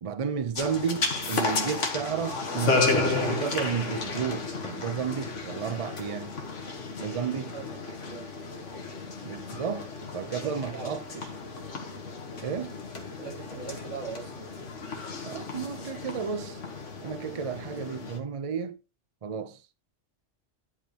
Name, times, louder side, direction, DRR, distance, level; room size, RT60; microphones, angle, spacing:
voice 1, 0.0-6.4 7.0-7.5 9.2-11.3 12.4-12.7 15.2-16.6 17.0-18.8 19.2-19.6, right 7 dB, 40° right, 0.5 m, -32 dB
tennis match, 0.6-18.2, left 4 dB, 75° left, 1.7 m, -33 dB
voice 2, 7.5-8.3 10.4-11.0 13.2-14.3, right 5 dB, 80° right, 2.5 m, -40 dB
10.5 x 4.9 x 2.9 m
omnidirectional pair, 1.3 m